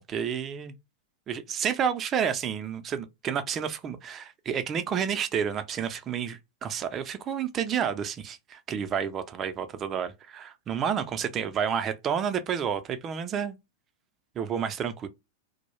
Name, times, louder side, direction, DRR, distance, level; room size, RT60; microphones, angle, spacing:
voice 1, 0.1-0.7 1.3-13.6 14.4-15.1, right 8 dB, 30° right, 0.4 m, -30 dB
2.1 x 2.0 x 2.9 m
hypercardioid pair, 100°, 0 cm